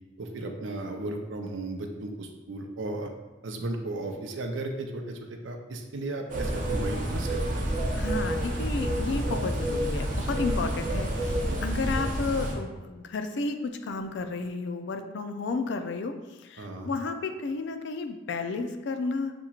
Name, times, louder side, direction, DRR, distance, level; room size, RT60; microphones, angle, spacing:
voice 1, 0.2-3.1 3.4-7.4 11.5-11.6 16.6-16.9, right 2 dB, 80° right, 4 dB, 0.6 m, -35 dB
sound 1, 6.3-12.5, right 1 dB, 40° right, 0.7 m, -29 dB
voice 2, 7.9-19.3, left 3 dB, 65° left, 7 dB, 0.4 m, -32 dB
6.8 x 2.9 x 2.4 m, 1.2 s
head